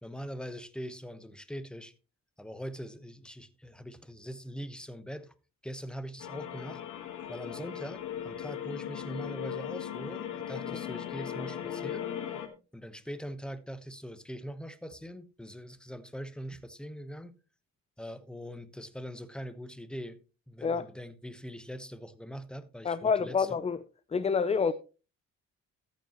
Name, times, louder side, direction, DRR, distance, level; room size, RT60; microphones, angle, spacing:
voice 1, 0.0-1.9 2.4-5.3 5.6-6.8 7.3-12.1 12.7-17.3 18.0-20.2 20.5-23.5, equal, 5° left, 1.0 m, -42 dB
sound 1, 6.2-12.5, left 9 dB, 80° left, 1.6 m, -38 dB
voice 2, 22.8-23.8 24.1-24.7, left 5 dB, 20° left, 0.5 m, -27 dB
14.0 x 8.5 x 3.0 m
cardioid pair, 90°, 30 cm